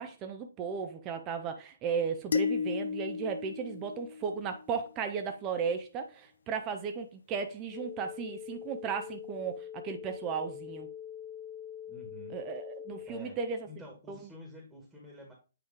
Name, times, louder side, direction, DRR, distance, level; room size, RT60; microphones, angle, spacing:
voice 1, 0.0-10.9 12.3-13.6 14.1-14.2, right 6 dB, 20° right, 0.7 m, -35 dB
sound 1, 2.3-4.7, left 5 dB, 60° left, 0.6 m, -33 dB
sound 2, 7.7-13.1, left 9 dB, 25° left, 1.2 m, -44 dB
voice 2, 11.9-12.4 13.1-13.4 13.7-15.3, left 1 dB, 5° right, 1.6 m, -48 dB
8.8 x 3.1 x 3.5 m
figure-of-eight pair, 130°, 0 cm